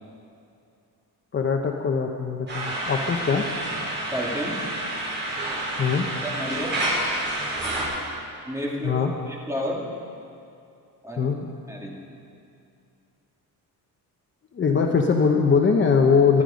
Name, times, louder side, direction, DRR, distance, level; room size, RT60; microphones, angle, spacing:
voice 1, 1.3-3.4 5.8-6.1 8.8-9.1 11.2-11.5 14.5-16.4, left 5 dB, 30° left, 2 dB, 0.9 m, -21 dB
sound 1, 2.5-7.8, right 1 dB, 30° right, 5.2 m, -29 dB
voice 2, 4.1-4.6 6.2-6.8 8.5-9.9 11.0-11.3 11.7-12.0, equal, 10° right, -3 dB, 2.4 m, -31 dB
24.0 x 11.5 x 5.2 m, 2.6 s
cardioid pair, 155°, 36 cm